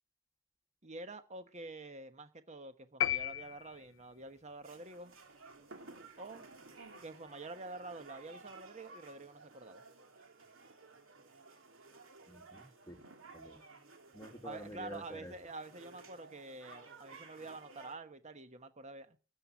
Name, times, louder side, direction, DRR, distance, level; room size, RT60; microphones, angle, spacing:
voice 1, 0.8-5.1 6.2-6.5 7.0-9.8 14.4-19.2, right 2 dB, 35° right, 1.2 m, -48 dB
sound 1, 3.0-4.2, left 12 dB, 65° left, 0.6 m, -35 dB
sound 2, 4.6-18.0, right 3 dB, 70° right, 2.8 m, -56 dB
voice 2, 12.3-13.0 13.3-13.6 14.1-15.3, equal, 15° left, 2.0 m, -48 dB
13.5 x 7.7 x 7.7 m
head